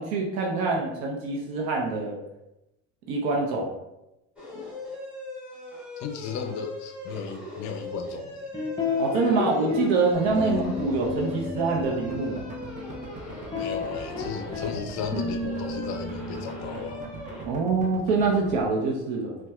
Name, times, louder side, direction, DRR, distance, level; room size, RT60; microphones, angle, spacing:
voice 1, 0.0-2.2 3.1-3.8 9.0-12.4 17.4-19.4, right 3 dB, 75° right, -1 dB, 0.7 m, -25 dB
sound 1, 4.4-17.4, left 1 dB, 5° right, 1.1 m, -40 dB
voice 2, 6.0-8.5 10.4-10.6 13.6-17.1, left 6 dB, 55° left, 7 dB, 0.5 m, -35 dB
sound 2, 8.5-10.0 10.3-13.0 13.3-17.6, left 4 dB, 15° left, 0.7 m, -33 dB
sound 3, 10.1-18.6, right 2 dB, 25° right, 0.5 m, -42 dB
4.0 x 2.3 x 2.3 m, 0.91 s
supercardioid pair, 105°, 34 cm